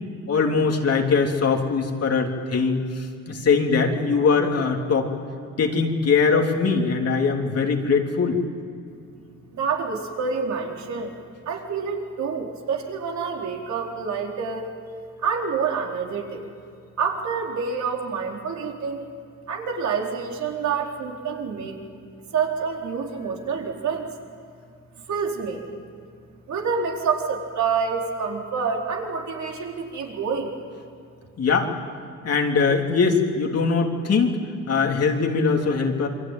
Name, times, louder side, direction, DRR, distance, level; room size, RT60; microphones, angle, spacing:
voice 1, 0.3-5.1 5.6-8.4 31.4-31.7 32.2-34.4 34.7-36.1, left 5 dB, 55° left, 2 dB, 3.3 m, -21 dB
voice 2, 9.5-11.2 11.5-14.7 15.2-16.4 17.0-19.1 19.5-21.8 22.3-24.1 24.9-25.7 26.5-30.5, right 5 dB, 65° right, 0 dB, 4.4 m, -27 dB
28.0 x 23.5 x 9.2 m, 2.4 s
cardioid pair, 90°, 30 cm